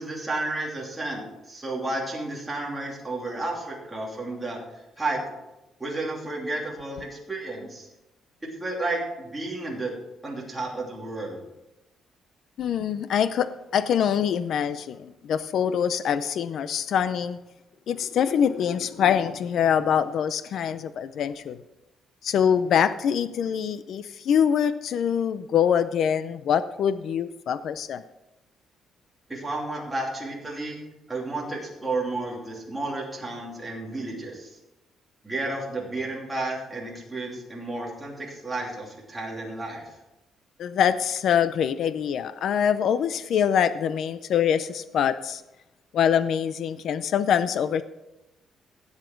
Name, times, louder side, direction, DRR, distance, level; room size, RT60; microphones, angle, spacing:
voice 1, 0.0-4.6 5.0-5.2 5.8-7.9 8.4-9.9 10.2-11.4 29.3-30.8 31.1-34.6 35.2-39.8, right 2 dB, 10° right, -3 dB, 2.9 m, -32 dB
voice 2, 12.6-17.4 17.9-21.6 22.2-28.0 40.6-45.4 45.9-47.8, left 8 dB, 55° left, 13 dB, 0.5 m, -24 dB
16.0 x 8.1 x 4.5 m, 0.96 s
cardioid pair, 175°, 0 cm